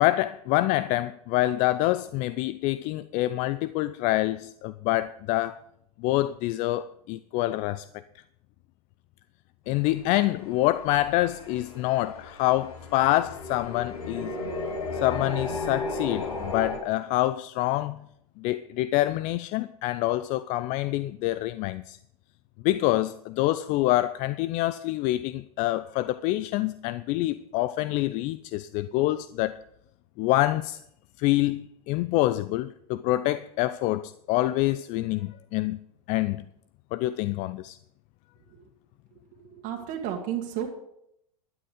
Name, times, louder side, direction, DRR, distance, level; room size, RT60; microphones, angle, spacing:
voice 1, 0.0-5.6 6.0-7.8 9.7-14.3 14.9-18.0 18.4-22.0 22.6-29.5 30.2-30.8 31.2-35.8 36.1-36.4 36.9-37.8, left 16 dB, 40° left, 0.5 m, -26 dB
sound 1, 9.7-16.8, left 3 dB, 80° left, 2.8 m, -35 dB
voice 2, 39.5-40.7, right 10 dB, 45° right, 1.9 m, -32 dB
12.5 x 10.0 x 5.0 m
hypercardioid pair, 95°, 19 cm